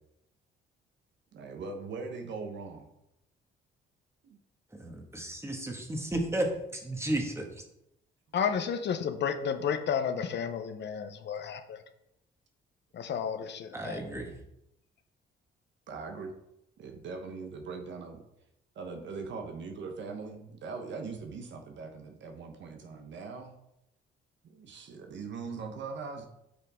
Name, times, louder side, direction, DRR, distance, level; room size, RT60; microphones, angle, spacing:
voice 1, 1.3-2.9 4.2-4.4 15.9-16.3 16.8-18.2 18.7-23.5 24.5-26.3, right 4 dB, 65° right, 4 dB, 1.1 m, -41 dB
voice 2, 4.7-7.5 13.7-14.4, right 1 dB, 15° right, 2 dB, 1.7 m, -33 dB
voice 3, 8.3-11.8 12.9-14.0, left 7 dB, 60° left, 8 dB, 1.0 m, -32 dB
8.3 x 5.6 x 3.7 m, 0.81 s
cardioid pair, 90°, 20 cm